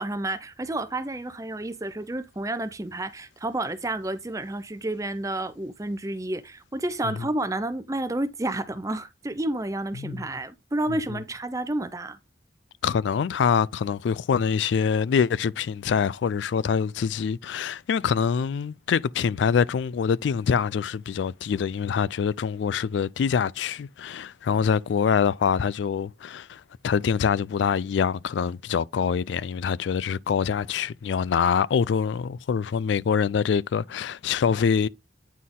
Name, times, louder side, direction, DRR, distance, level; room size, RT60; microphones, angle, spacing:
voice 1, 0.0-12.2, right 1 dB, 20° right, 0.6 m, -30 dB
voice 2, 12.8-34.9, left 6 dB, 80° left, 0.3 m, -25 dB
9.3 x 4.2 x 3.7 m
head